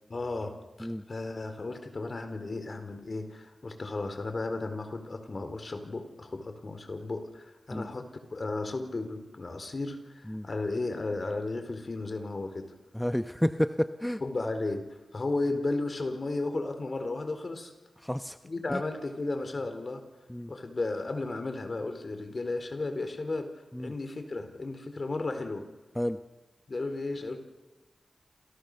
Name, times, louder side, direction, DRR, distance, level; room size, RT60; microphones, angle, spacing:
voice 1, 0.1-12.7 14.2-17.7 18.4-20.0 20.5-25.7 26.7-27.4, left 2 dB, 50° left, 8 dB, 4.5 m, -34 dB
voice 2, 12.9-14.2 18.0-18.4 18.7-18.8 20.3-20.5 23.7-23.9 25.9-26.2, equal, 5° left, 9 dB, 1.0 m, -30 dB
29.5 x 28.0 x 6.9 m, 1.1 s
cardioid pair, 55°, 0 cm